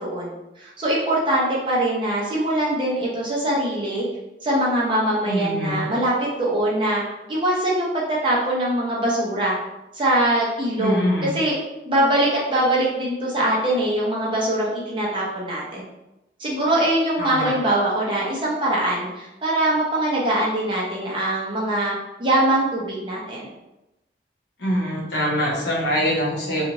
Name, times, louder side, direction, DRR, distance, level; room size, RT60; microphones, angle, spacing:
voice 1, 0.0-4.0 4.4-7.0 7.3-9.6 9.9-11.5 11.8-15.8 16.4-21.9 22.2-23.5, right 1 dB, 30° right, -5 dB, 0.7 m, -22 dB
voice 2, 5.2-5.8 10.8-11.3 17.2-17.5 24.6-26.7, equal, 75° left, -4 dB, 1.0 m, -24 dB
2.8 x 2.4 x 2.9 m, 0.96 s
head